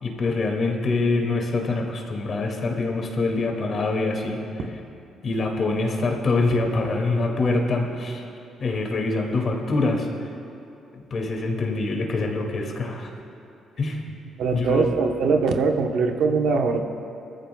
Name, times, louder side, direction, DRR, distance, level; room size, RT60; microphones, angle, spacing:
voice 1, 0.0-4.4 5.2-8.2 8.6-10.1 10.9-13.1 13.8-14.0 14.5-14.8, left 3 dB, 50° left, 1 dB, 2.3 m, -25 dB
voice 2, 14.4-16.8, right 4 dB, 75° right, 4 dB, 1.0 m, -22 dB
21.0 x 14.5 x 2.3 m, 2.7 s
cardioid pair, 90°, 0 cm